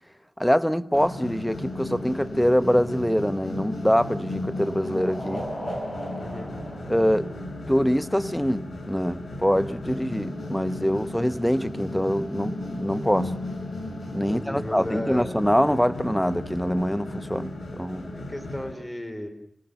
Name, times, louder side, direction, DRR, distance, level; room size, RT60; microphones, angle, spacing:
voice 1, 0.4-5.4 6.9-7.3 7.7-13.3 14.1-18.1, equal, 5° left, 0.9 m, -24 dB
sound 1, 0.9-18.7, left 1 dB, 85° left, 7.1 m, -35 dB
sound 2, 3.5-7.9, equal, 45° left, 5.9 m, -38 dB
voice 2, 6.2-6.6 14.3-15.3 18.1-19.3, left 1 dB, 20° left, 4.3 m, -35 dB
29.5 x 18.0 x 7.0 m
wide cardioid pair, 70°, 0 cm